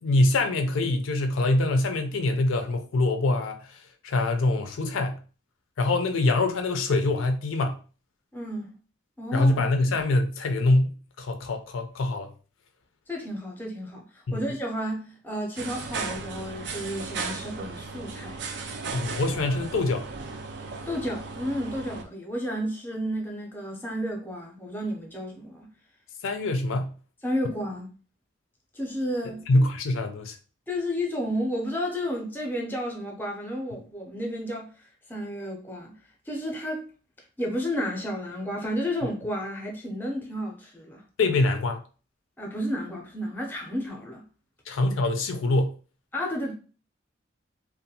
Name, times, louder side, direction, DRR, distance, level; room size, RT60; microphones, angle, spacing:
voice 1, 0.0-5.2 5.8-7.8 9.3-12.3 14.3-14.4 18.9-20.1 26.2-27.0 29.5-30.4 41.2-41.8 44.7-45.7, left 2 dB, 90° left, 0.4 m, -24 dB
voice 2, 8.3-8.7 9.2-9.5 13.1-18.4 20.9-25.7 27.2-27.9 28.7-29.5 30.7-36.0 36.3-36.9 37.4-41.0 42.4-44.3 46.1-46.5, equal, 10° left, 0.5 m, -32 dB
sound 1, 15.6-22.0, right 4 dB, 60° right, 0.3 m, -36 dB
2.5 x 2.2 x 2.7 m
head